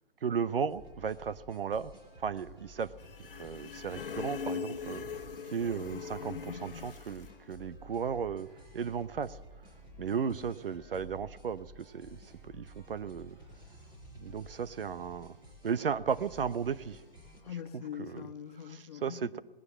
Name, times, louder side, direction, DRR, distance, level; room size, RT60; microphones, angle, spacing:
voice 1, 0.2-1.9 2.2-2.9 3.4-5.1 5.5-8.5 8.7-9.4 10.0-12.2 12.4-13.4 14.2-15.3 15.6-17.0 19.0-19.4, right 6 dB, 70° right, 15 dB, 0.9 m, -35 dB
sound 1, 0.7-17.4, equal, 15° right, 5.4 m, -53 dB
sound 2, 3.0-7.4, left 6 dB, 65° left, 1.2 m, -41 dB
voice 2, 10.1-10.5 10.8-11.0 17.4-19.3, left 9 dB, 40° left, 7 dB, 1.6 m, -43 dB
19.0 x 19.0 x 7.4 m, 1.1 s
hypercardioid pair, 145°, 29 cm